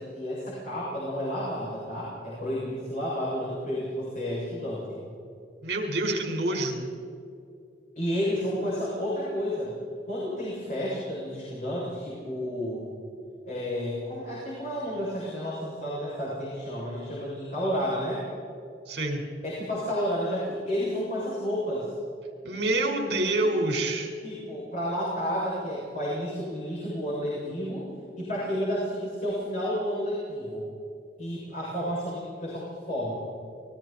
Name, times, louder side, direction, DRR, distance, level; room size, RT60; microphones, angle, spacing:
voice 1, 0.0-5.0 8.0-9.7 10.0-12.9 13.4-18.3 19.4-21.9 24.2-27.9 28.2-30.6 31.2-33.1, equal, 45° left, -7 dB, 7.3 m, -31 dB
voice 2, 5.6-6.9 18.9-19.2 22.4-24.1, right 2 dB, 70° right, 2 dB, 5.1 m, -27 dB
29.5 x 22.0 x 4.5 m, 2.6 s
head